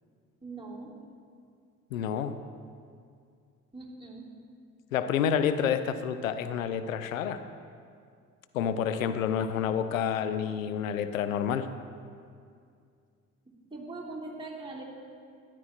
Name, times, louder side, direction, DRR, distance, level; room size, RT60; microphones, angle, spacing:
voice 1, 0.4-0.9 3.7-4.3 13.7-14.8, right 3 dB, 15° right, -4 dB, 3.0 m, -41 dB
voice 2, 1.9-2.4 4.9-7.4 8.5-11.7, left 8 dB, 90° left, 11 dB, 0.6 m, -29 dB
13.0 x 10.0 x 4.3 m, 2.3 s
hypercardioid pair, 50°, 40 cm